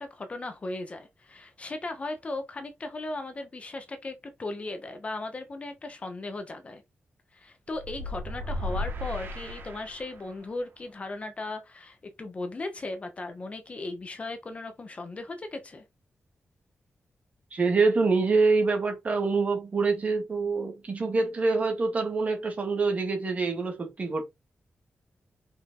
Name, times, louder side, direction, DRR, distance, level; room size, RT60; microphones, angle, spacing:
voice 1, 0.0-6.8 7.3-15.8, left 2 dB, 30° left, 1.1 m, -37 dB
sound 1, 7.7-10.4, left 1 dB, 60° right, 2.6 m, -35 dB
voice 2, 17.5-24.2, right 4 dB, 35° right, 2.2 m, -25 dB
5.8 x 5.3 x 3.9 m
wide cardioid pair, 175°, 4 cm